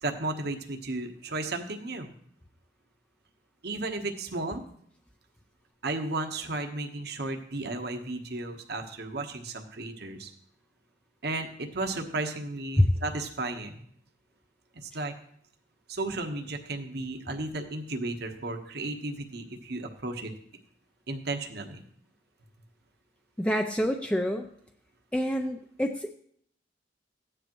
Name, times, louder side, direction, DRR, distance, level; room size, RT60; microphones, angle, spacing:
voice 1, 0.0-2.1 3.6-4.6 5.8-10.3 11.2-13.8 14.7-15.1 15.9-20.3 21.1-21.8, right 2 dB, 65° right, 4 dB, 1.2 m, -34 dB
voice 2, 23.4-24.5 25.1-26.1, left 1 dB, 5° left, 4 dB, 0.5 m, -26 dB
15.0 x 10.0 x 3.1 m, 0.65 s
head